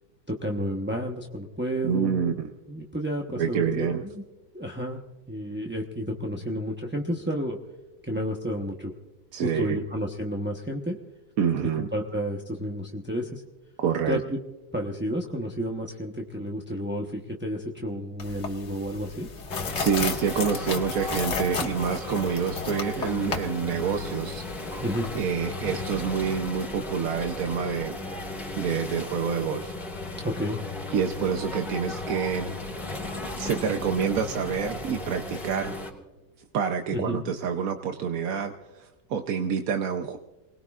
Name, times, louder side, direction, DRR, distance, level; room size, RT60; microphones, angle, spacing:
voice 1, 0.3-2.3 2.7-4.2 4.5-5.0 5.3-7.6 8.0-8.9 9.4-10.9 11.8-13.4 14.1-14.4 14.7-19.3 24.8-25.1 30.2-30.6 36.9-37.2, equal, 10° right, -1 dB, 0.6 m, -31 dB
voice 2, 1.8-2.5 3.4-4.0 9.3-9.8 11.4-11.9 13.8-14.2 19.8-24.4 25.1-28.0 28.6-29.7 30.9-32.6 33.4-35.8 36.5-40.2, right 7 dB, 60° right, 5 dB, 1.1 m, -27 dB
sound 1, 18.2-25.2, left 5 dB, 70° left, 1.9 m, -34 dB
sound 2, 19.5-35.9, left 2 dB, 30° left, 3.6 m, -35 dB
28.5 x 20.0 x 2.4 m, 1.1 s
omnidirectional pair, 1.9 m